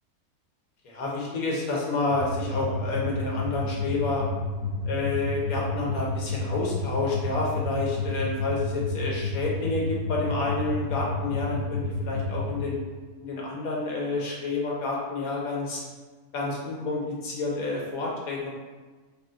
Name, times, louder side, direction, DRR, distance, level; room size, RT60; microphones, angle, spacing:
voice 1, 0.8-4.3 4.8-12.8 13.2-15.8 16.3-18.5, left 3 dB, 65° left, -3 dB, 1.4 m, -29 dB
onde basse, 2.1-12.5, left 2 dB, 40° right, 0.6 m, -31 dB
4.2 x 3.2 x 3.7 m, 1.3 s
omnidirectional pair, 1.7 m